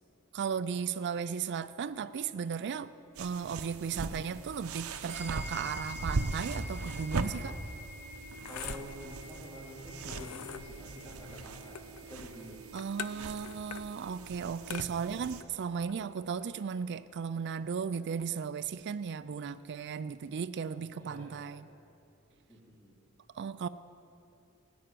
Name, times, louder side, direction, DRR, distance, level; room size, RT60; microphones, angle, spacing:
voice 1, 0.3-2.9 3.2-7.6 12.7-21.7 23.3-23.7, right 6 dB, 50° right, 14 dB, 0.4 m, -36 dB
sound 1, 3.2-15.4, right 3 dB, 75° right, 0.7 m, -40 dB
sound 2, 5.1-14.8, left 2 dB, 10° right, 2.9 m, -50 dB
sound 3, 7.6-17.1, left 8 dB, 85° left, 0.5 m, -47 dB
voice 2, 8.4-11.8 12.1-12.7 14.3-14.7 21.0-21.7 22.5-23.0, equal, 20° left, -11 dB, 3.1 m, -48 dB
17.0 x 6.2 x 9.1 m, 2.7 s
head